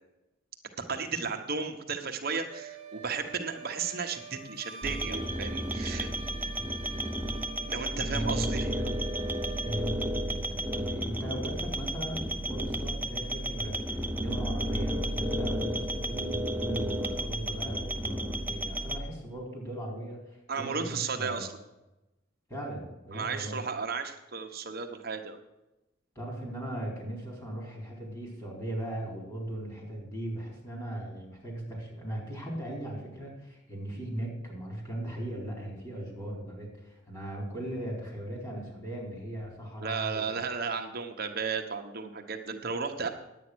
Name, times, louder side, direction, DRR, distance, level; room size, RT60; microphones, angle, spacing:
voice 1, 0.8-6.1 7.7-8.9 20.5-21.5 23.1-25.4 39.8-43.1, right 5 dB, 50° right, 4 dB, 1.3 m, -34 dB
Wind instrument woodwind instrument, 2.5-9.9, right 5 dB, 25° right, 1.7 m, -46 dB
sound 1, 4.8-19.0, right 1 dB, 10° right, 0.7 m, -32 dB
voice 2, 8.1-8.5 9.6-21.4 22.5-23.6 26.1-40.4, right 1 dB, 20° left, -1 dB, 4.4 m, -38 dB
10.5 x 9.0 x 6.3 m, 0.95 s
head